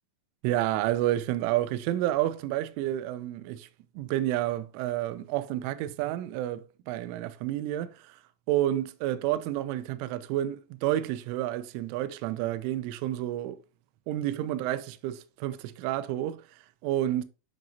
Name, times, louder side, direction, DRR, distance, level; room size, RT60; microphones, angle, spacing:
voice 1, 0.4-3.7 4.0-8.2 8.5-13.6 14.1-17.2, right 13 dB, 85° right, 2.9 m, -30 dB
10.5 x 5.1 x 2.7 m
omnidirectional pair, 5.7 m